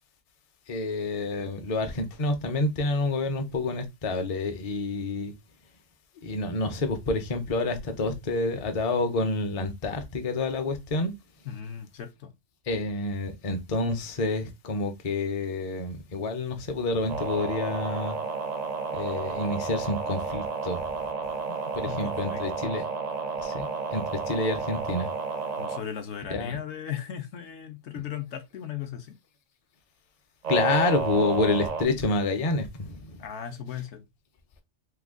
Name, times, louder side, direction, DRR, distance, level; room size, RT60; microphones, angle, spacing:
voice 1, 0.7-5.3 6.2-11.1 12.7-18.2 18.9-20.9 21.7-22.8 23.4-25.1 26.3-26.6 30.5-33.2, left 2 dB, 40° left, 0.6 m, -28 dB
voice 2, 11.5-12.3 21.9-22.8 25.6-29.2 33.2-34.1, left 9 dB, 70° left, 0.8 m, -37 dB
sound 1, 17.1-25.8 30.4-31.8, right 5 dB, 55° right, 0.4 m, -31 dB
3.1 x 2.2 x 3.6 m
omnidirectional pair, 1.3 m